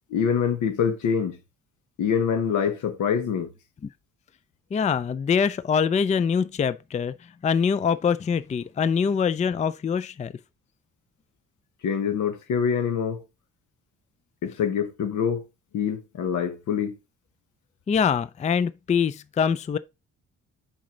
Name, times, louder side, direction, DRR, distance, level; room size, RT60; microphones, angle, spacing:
voice 1, 0.1-1.4 2.0-3.5 11.8-13.2 14.4-15.4 15.7-17.0, left 7 dB, 80° left, 1.5 m, -25 dB
voice 2, 4.7-7.1 7.4-10.3 17.9-19.8, left 6 dB, 25° left, 0.4 m, -24 dB
7.4 x 5.3 x 3.8 m
cardioid pair, 90°, 30 cm